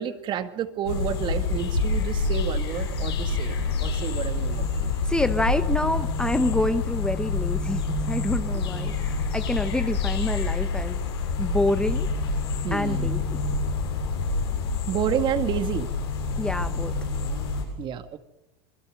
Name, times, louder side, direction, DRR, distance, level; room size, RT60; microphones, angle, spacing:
voice 1, 0.0-3.6 3.8-4.7 12.6-13.1 14.8-15.9 17.8-18.2, right 9 dB, 35° right, 9 dB, 1.9 m, -30 dB
sound 1, 0.9-17.6, left 3 dB, 85° left, 7.3 m, -27 dB
voice 2, 5.1-11.0 11.4-12.1 12.7-13.2 16.4-16.9, left 2 dB, 5° left, 10 dB, 0.9 m, -27 dB
27.5 x 21.0 x 6.4 m, 0.87 s
hypercardioid pair, 115°, 13 cm